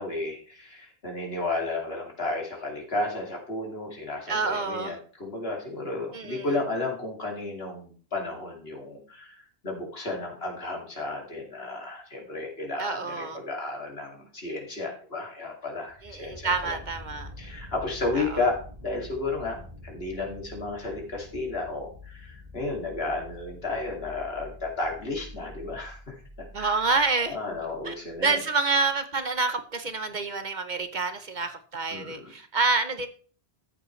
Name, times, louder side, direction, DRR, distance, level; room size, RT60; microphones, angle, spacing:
voice 1, 0.0-9.4 9.6-16.7 17.4-18.6 18.8-19.6 19.8-26.2 26.6-26.8 27.3-28.4 31.9-32.3, left 2 dB, 75° left, 0 dB, 2.8 m, -33 dB
voice 2, 4.3-5.0 6.1-6.5 12.8-13.4 16.0-17.3 18.1-18.4 26.5-27.4 27.8-27.9 28.2-33.1, right 4 dB, 50° right, 9 dB, 1.0 m, -28 dB
sound 1, 15.9-28.3 28.8-28.9, left 2 dB, 75° right, 4.2 m, -46 dB
13.5 x 8.5 x 3.2 m, 0.42 s
omnidirectional pair, 1.0 m